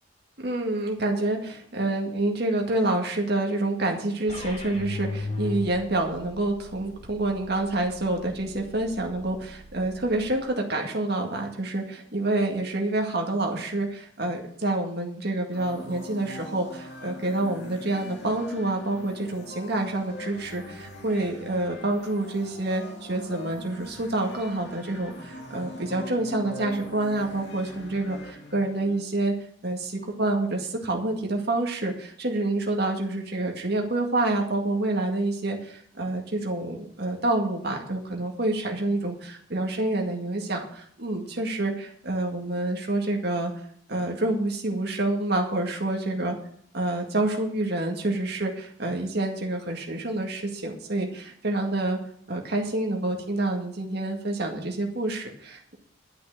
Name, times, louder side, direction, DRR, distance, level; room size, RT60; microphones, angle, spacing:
voice 1, 0.4-29.3 29.6-43.5 43.9-46.3 46.7-52.0 52.3-55.8, right 2 dB, 55° right, 2 dB, 2.0 m, -28 dB
sound 1, 4.3-10.3, left 2 dB, 40° left, 3.9 m, -38 dB
sound 2, 15.5-29.0, left 1 dB, 55° left, 2.4 m, -42 dB
11.5 x 6.0 x 8.8 m, 0.65 s
head